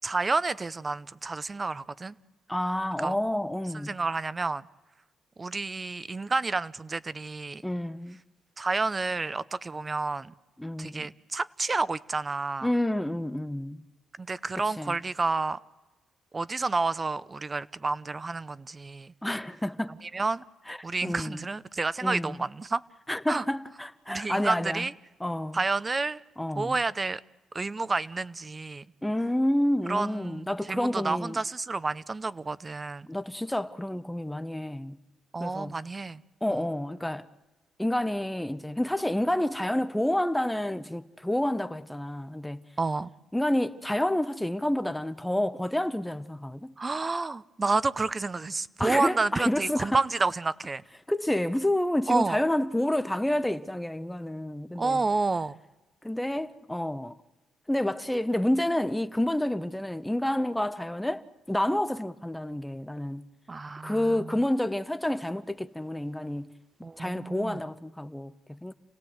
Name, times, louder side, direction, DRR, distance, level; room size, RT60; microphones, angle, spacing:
voice 1, 0.0-2.2 3.0-3.2 3.8-4.7 5.4-7.6 8.6-10.3 10.8-12.7 14.2-15.6 16.3-19.1 20.1-20.4 20.8-22.8 23.3-23.4 24.1-24.9 25.5-26.2 26.6-27.2 27.5-28.9 29.9-33.1 35.3-36.2 36.5-36.6 42.8-43.1 46.8-50.8 52.1-52.4 54.8-55.6 63.5-64.4 66.8-67.6, right 3 dB, 25° right, 0.7 m, -30 dB
voice 2, 2.5-3.9 7.6-8.2 10.6-11.1 12.6-13.9 14.8-15.0 19.2-20.0 20.7-21.4 22.0-22.4 23.1-24.9 25.2-25.6 26.4-26.8 29.0-31.4 33.1-35.0 35.4-35.7 36.4-37.3 37.8-42.6 43.3-46.7 48.8-50.0 51.1-55.0 56.0-57.2 57.7-63.2 63.8-66.5 67.0-68.7, left 1 dB, 5° left, 0.8 m, -29 dB
29.5 x 17.5 x 7.9 m
cardioid pair, 90°, 0 cm